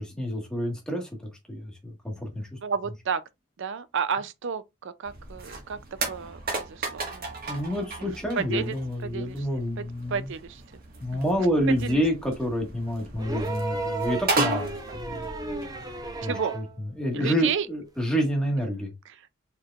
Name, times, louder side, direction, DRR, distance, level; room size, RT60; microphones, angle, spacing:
voice 1, 0.0-2.6 7.5-10.3 11.0-15.3 16.2-16.6 17.0-18.9, equal, 5° left, 1.6 m, -28 dB
voice 2, 2.6-3.2 3.6-5.8 6.1-7.3 8.0-8.7 9.0-9.5 9.8-10.6 11.1-11.2 11.8-12.0 16.2-16.6 17.1-17.7, right 6 dB, 60° right, 0.5 m, -32 dB
sound 1, 5.0-16.2, right 2 dB, 45° right, 1.6 m, -35 dB
sound 2, 13.2-16.7 18.1-18.2, right 3 dB, 20° right, 0.7 m, -34 dB
4.6 x 4.5 x 2.4 m
head